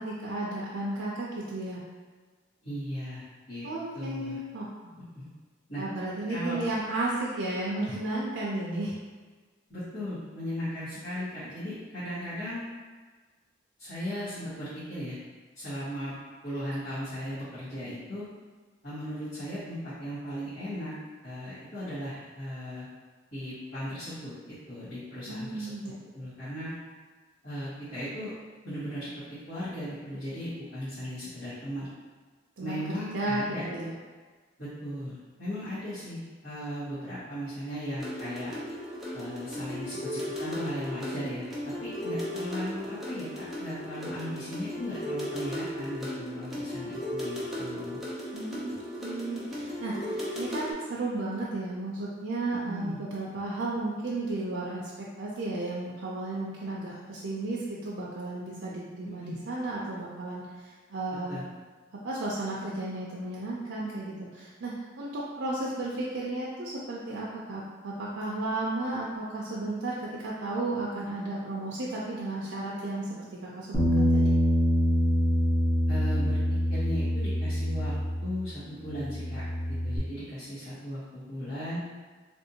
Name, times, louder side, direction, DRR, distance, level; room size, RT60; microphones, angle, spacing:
voice 1, 0.0-1.8 3.6-4.7 5.8-8.9 25.3-25.9 32.6-32.8 33.1-33.9 42.1-42.2 48.3-60.4 60.9-61.4 62.0-74.3, right 2 dB, 90° right, -6 dB, 0.5 m, -33 dB
voice 2, 2.6-3.7 3.9-4.4 5.1-5.3 5.7-5.8 6.3-6.6 9.7-12.6 13.8-15.1 15.5-16.1 16.4-18.2 18.8-20.9 21.2-22.8 23.3-25.7 26.1-26.7 27.4-28.3 28.6-29.1 29.5-31.9 32.6-33.6 34.6-38.5 39.1-48.0 52.5-53.0 59.0-59.4 61.3-61.4 75.9-79.4 79.8-81.8, equal, 70° left, -16 dB, 1.5 m, -37 dB
sound 1, 38.0-50.7, left 1 dB, ahead, 0.5 m, -36 dB
Bass guitar, 73.7-78.5 78.8-80.0, equal, 45° left, 1.0 m, -25 dB
3.5 x 2.6 x 2.7 m, 1.4 s
head